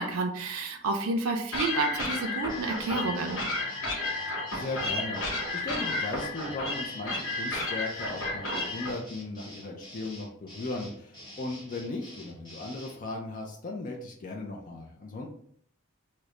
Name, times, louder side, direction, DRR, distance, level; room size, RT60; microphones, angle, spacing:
voice 1, 0.0-3.4, right 3 dB, 85° right, 3 dB, 0.4 m, -30 dB
sound 1, 1.5-8.9, left 2 dB, 65° left, 0.9 m, -32 dB
sound 2, 2.5-13.0, equal, 20° left, 1.0 m, -48 dB
voice 2, 4.5-5.2 5.5-15.3, left 2 dB, 40° left, -1 dB, 0.4 m, -37 dB
3.1 x 2.1 x 3.6 m, 0.64 s
head